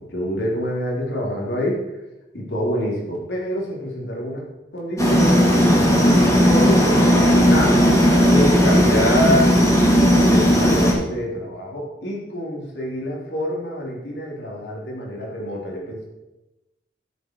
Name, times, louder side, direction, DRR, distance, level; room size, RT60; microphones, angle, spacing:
voice 1, 0.1-1.8 2.3-4.4 4.7-7.8 8.2-9.7 10.1-16.0, equal, 70° left, -3 dB, 3.8 m, -26 dB
sound 1, 5.0-10.9, equal, 15° left, 2.7 m, -15 dB
12.5 x 8.1 x 4.7 m, 1.0 s
head